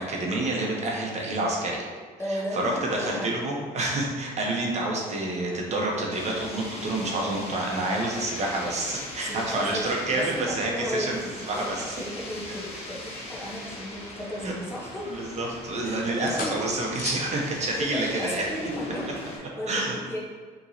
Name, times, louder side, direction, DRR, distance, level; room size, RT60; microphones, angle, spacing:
voice 1, 0.0-1.8 2.2-11.2 11.5-11.8 14.4-14.5 15.1-18.4 19.7-19.9, right 2 dB, 40° right, -2 dB, 0.9 m, -28 dB
voice 2, 2.2-3.4 9.2-11.1 11.5-15.1 15.8-16.0 16.3-16.7 17.7-19.0 19.3-20.2, equal, 15° left, -4 dB, 0.9 m, -35 dB
sound 1, 6.1-19.4, left 1 dB, 35° left, 1.1 m, -40 dB
sound 2, 13.1-14.7 15.0-15.8 16.3-17.3 19.2-19.4, left 4 dB, 55° left, 0.6 m, -41 dB
5.3 x 3.0 x 2.7 m, 1.5 s
cardioid pair, 110°, 17 cm